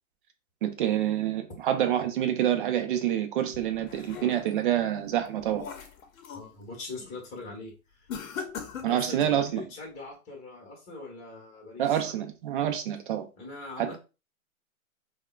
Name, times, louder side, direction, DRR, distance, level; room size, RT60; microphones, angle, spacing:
voice 1, 0.6-5.6 8.8-9.6 11.8-13.3 13.8-14.0, right 11 dB, 40° right, 0.5 m, -27 dB
sound 1, 3.5-4.7 5.2-6.5 6.9-7.2 8.1-9.5, left 6 dB, 70° left, 0.8 m, -40 dB
voice 2, 6.3-7.7 8.0-8.1 8.9-12.0 13.4-14.0, left 3 dB, 15° left, 1.0 m, -42 dB
3.5 x 2.2 x 2.3 m
hypercardioid pair, 135°, 43 cm